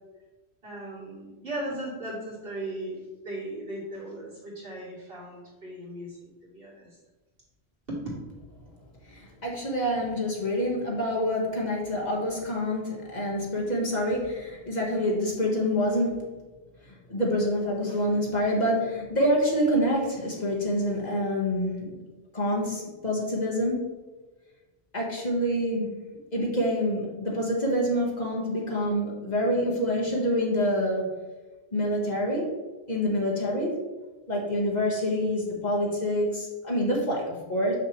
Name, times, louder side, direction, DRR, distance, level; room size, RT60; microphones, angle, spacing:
voice 1, 0.6-6.9 7.9-8.0 34.3-34.4, right 1 dB, 60° right, -6 dB, 2.6 m, -37 dB
voice 2, 9.0-16.3 16.9-22.0 22.3-23.9 24.9-25.9 26.3-31.1 31.7-32.5 32.9-33.8 34.3-37.7, equal, 45° left, -3 dB, 1.5 m, -27 dB
6.6 x 6.1 x 3.1 m, 1.2 s
omnidirectional pair, 1.1 m